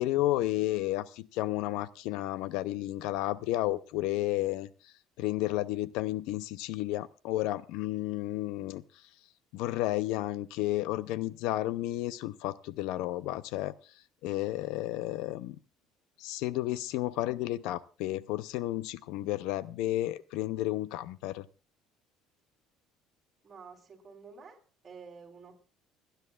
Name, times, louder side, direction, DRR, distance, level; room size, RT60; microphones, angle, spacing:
voice 1, 0.0-4.7 5.2-8.8 9.5-13.7 14.2-15.6 16.2-21.5, left 16 dB, 80° left, 0.6 m, -32 dB
voice 2, 23.4-25.6, right 5 dB, 25° right, 3.6 m, -50 dB
29.5 x 10.5 x 2.4 m
cardioid pair, 145°, 0 cm